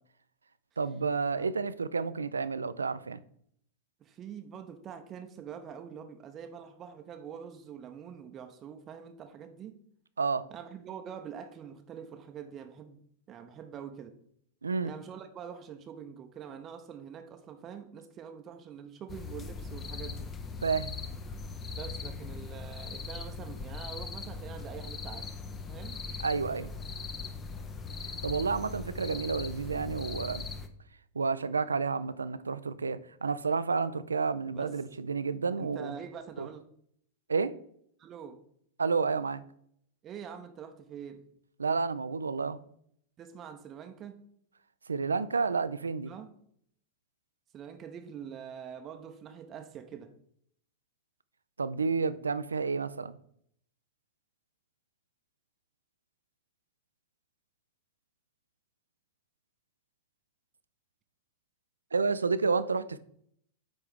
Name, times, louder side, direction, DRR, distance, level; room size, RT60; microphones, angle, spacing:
voice 1, 0.8-3.2 10.2-10.5 14.6-14.9 20.6-21.0 26.2-26.7 28.2-30.4 31.1-35.9 36.4-36.5 37.3-37.6 38.8-39.4 41.6-42.6 44.9-46.1 51.6-53.2 61.9-63.0, right 4 dB, 75° right, 0.3 m, -30 dB
voice 2, 4.0-9.8 10.5-14.1 14.8-20.3 21.7-25.3 25.7-26.0 34.5-34.8 35.6-36.6 38.0-38.4 40.0-41.2 43.2-44.2 46.0-46.3 47.5-50.1, right 8 dB, 30° right, 0.6 m, -45 dB
sound 1, 19.1-30.7, left 4 dB, 25° left, 0.6 m, -40 dB
9.0 x 3.5 x 3.5 m
figure-of-eight pair, 95°, 0 cm